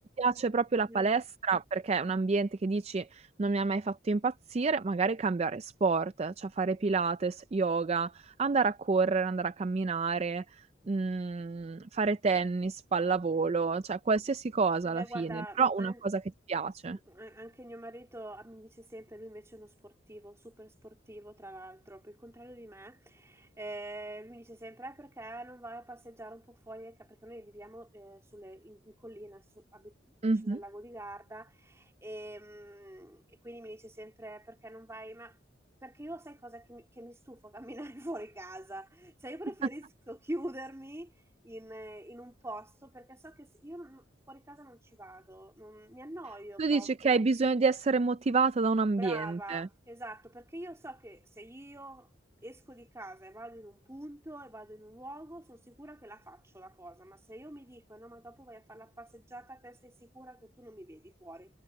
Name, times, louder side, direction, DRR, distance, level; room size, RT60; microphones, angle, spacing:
voice 1, 0.0-16.2 16.5-17.0 30.2-30.6 46.6-49.7, right 4 dB, 35° right, 0.4 m, -29 dB
voice 2, 0.9-1.2 14.8-16.0 17.1-30.2 30.4-35.4 35.8-41.1 41.4-47.2 48.9-52.1 52.4-61.5, right 1 dB, 15° right, 3.2 m, -45 dB
head